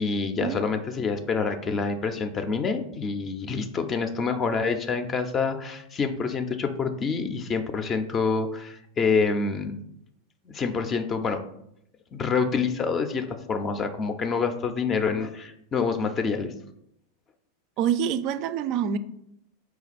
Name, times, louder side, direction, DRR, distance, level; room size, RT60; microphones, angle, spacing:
voice 1, 0.0-9.8 10.5-11.4 12.1-16.5, left 5 dB, 30° left, 8 dB, 0.4 m, -27 dB
voice 2, 17.8-19.0, right 8 dB, 50° right, 13 dB, 0.3 m, -26 dB
5.1 x 2.3 x 4.1 m, 0.77 s
hypercardioid pair, 100°, 0 cm